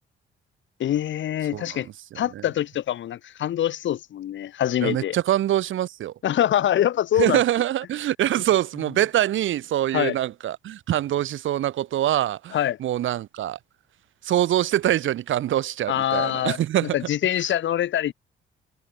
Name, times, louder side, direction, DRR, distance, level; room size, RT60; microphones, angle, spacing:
voice 1, 0.8-1.9 2.1-5.2 6.2-7.4 9.9-10.2 12.5-12.8 15.9-18.1, left 11 dB, 70° left, 3.2 m, -24 dB
voice 2, 4.8-6.1 7.2-13.6 14.2-17.0, right 12 dB, 75° right, 7.8 m, -24 dB
cardioid pair, 90°, 20 cm